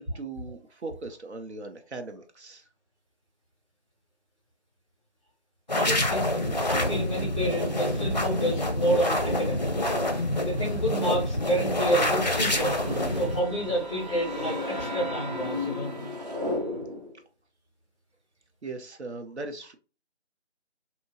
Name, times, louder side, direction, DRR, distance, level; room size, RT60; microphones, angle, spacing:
voice 1, 0.0-2.7 18.6-19.8, right 3 dB, 70° right, 0.7 m, -39 dB
sound 1, 5.7-13.4, left 1 dB, 40° left, 0.5 m, -27 dB
voice 2, 5.7-6.2 6.7-9.9 10.4-12.8 13.1-15.9, right 1 dB, ahead, 1.0 m, -29 dB
sound 2, 11.9-17.2, left 1 dB, 35° right, 0.8 m, -34 dB
2.8 x 2.6 x 2.5 m
figure-of-eight pair, 165°, 35 cm